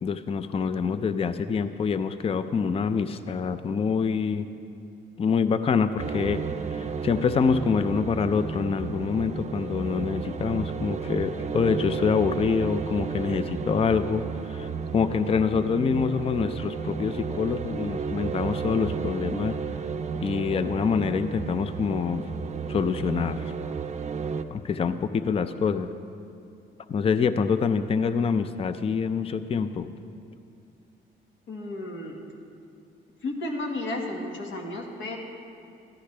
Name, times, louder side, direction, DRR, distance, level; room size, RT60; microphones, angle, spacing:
voice 1, 0.0-4.5 5.2-6.4 6.7-19.6 20.2-22.3 22.7-23.5 24.5-25.9 26.9-29.9, left 6 dB, 30° left, 11 dB, 0.4 m, -26 dB
sound 1, 6.0-24.4, right 6 dB, 35° right, 0.5 m, -33 dB
voice 2, 31.5-32.2 33.2-35.2, left 2 dB, 80° left, 1 dB, 1.6 m, -33 dB
14.0 x 11.5 x 3.3 m, 2.5 s
cardioid pair, 90°, 20 cm